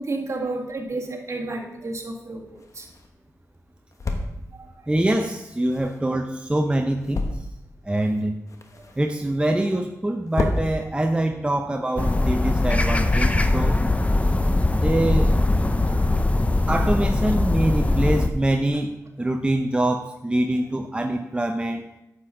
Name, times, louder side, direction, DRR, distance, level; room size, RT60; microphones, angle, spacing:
voice 1, 0.0-2.9 4.5-4.9 14.2-14.5 15.2-15.3 15.8-16.5 17.8-17.9 20.5-20.7, right 2 dB, 50° right, 0 dB, 2.0 m, -33 dB
sound 1, 1.8-13.0, left 2 dB, 55° left, 1.3 m, -34 dB
voice 2, 4.9-7.5 7.8-8.4 9.0-13.8 14.8-15.3 16.7-21.8, right 1 dB, 15° right, 4 dB, 0.8 m, -24 dB
sound 2, 12.0-18.3, left 2 dB, 20° left, 0.7 m, -21 dB
9.6 x 7.8 x 3.8 m, 0.89 s
cardioid pair, 50°, 6 cm